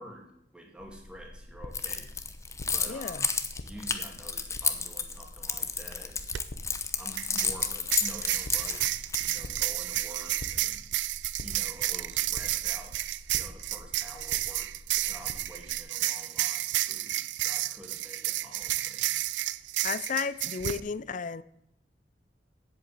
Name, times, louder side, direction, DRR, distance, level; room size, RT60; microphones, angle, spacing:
voice 1, 0.0-2.1 2.7-3.3 3.6-6.2 6.9-10.9 11.4-13.0 13.3-14.7 15.0-17.2 17.4-19.2, equal, 5° right, 2.2 m, -48 dB
sound 1, 0.8-15.8, left 1 dB, 70° left, 0.9 m, -47 dB
Keys jangling, 1.7-9.5, left 5 dB, 15° left, 0.8 m, -31 dB
voice 2, 2.9-3.3 19.8-21.4, left 6 dB, 45° left, 0.4 m, -33 dB
sound 2, 6.2-6.4 7.2-20.8, right 15 dB, 75° right, 0.4 m, -31 dB
8.1 x 7.9 x 8.5 m
head